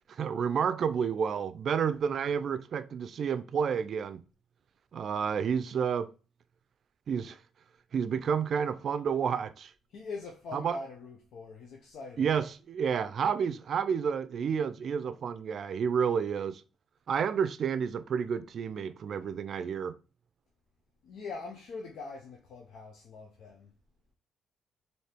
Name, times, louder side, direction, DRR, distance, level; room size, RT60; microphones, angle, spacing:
voice 1, 0.1-4.2 4.9-6.1 7.1-7.4 7.9-9.7 10.5-10.8 12.2-16.6 17.1-19.9, right 7 dB, 55° right, 0.4 m, -30 dB
voice 2, 9.9-12.4 21.0-23.7, left 4 dB, 75° left, 0.6 m, -43 dB
4.4 x 2.7 x 3.3 m
cardioid pair, 90°, 0 cm